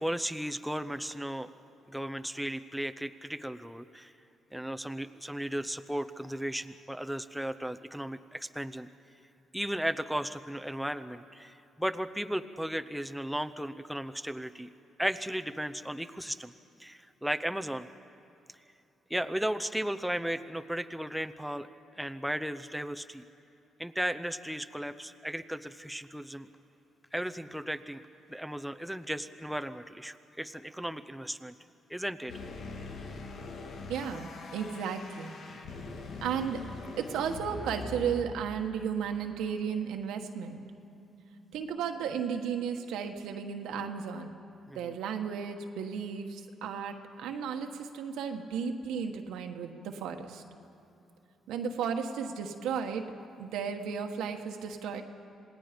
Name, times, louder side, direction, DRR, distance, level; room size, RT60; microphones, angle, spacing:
voice 1, 0.0-1.5 1.9-4.1 4.5-8.9 9.5-14.7 15.0-16.5 16.8-17.9 19.1-21.7 22.0-23.2 23.8-26.5 27.1-28.0 28.3-31.5 31.9-32.3 44.7-44.9, equal, ahead, 8 dB, 0.7 m, -35 dB
sound 1, 26.0-26.1 26.5-26.6 27.0-27.1 27.5-27.6 28.0-28.1 28.5-28.6 28.9-29.2 29.5-29.6 30.0-30.1 30.5-30.6 30.9-31.0 32.9-33.0 33.4-41.6, equal, 15° left, 3.4 m, -55 dB
sound 2, 32.3-38.2, left 3 dB, 65° left, 1.8 m, -42 dB
voice 2, 33.8-35.4 36.2-36.6 37.0-40.6 41.5-44.4 44.7-50.4 51.5-53.1 53.4-55.0, right 7 dB, 90° right, 5 dB, 1.4 m, -34 dB
27.0 x 18.5 x 5.2 m, 2.8 s
cardioid pair, 90°, 0 cm